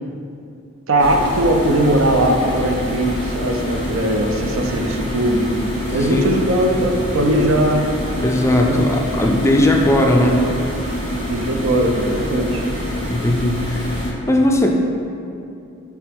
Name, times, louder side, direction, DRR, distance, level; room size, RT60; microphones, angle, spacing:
voice 1, 0.9-5.6 5.9-7.9 8.5-8.9 11.3-12.6, right 1 dB, 70° right, 3 dB, 0.6 m, -19 dB
sound 1, 1.0-14.1, equal, 40° right, 1.2 m, -26 dB
voice 2, 8.2-10.4 13.0-14.8, left 1 dB, 15° left, 1 dB, 0.4 m, -18 dB
7.9 x 3.4 x 3.5 m, 2.6 s
head